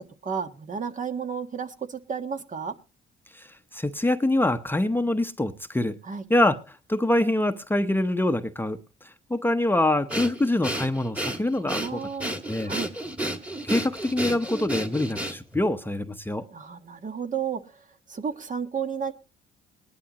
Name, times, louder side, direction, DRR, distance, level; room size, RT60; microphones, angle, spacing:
voice 1, 0.2-2.7 6.0-6.2 11.6-12.4 12.6-12.9 16.5-19.1, right 6 dB, 40° right, 1.4 m, -32 dB
voice 2, 3.3-6.0 6.3-12.0 12.5-12.7 13.6-16.4, left 1 dB, 10° left, 0.9 m, -25 dB
Breathing, 10.1-15.6, right 1 dB, 5° right, 1.8 m, -31 dB
19.5 x 11.0 x 3.0 m
cardioid pair, 90°, 20 cm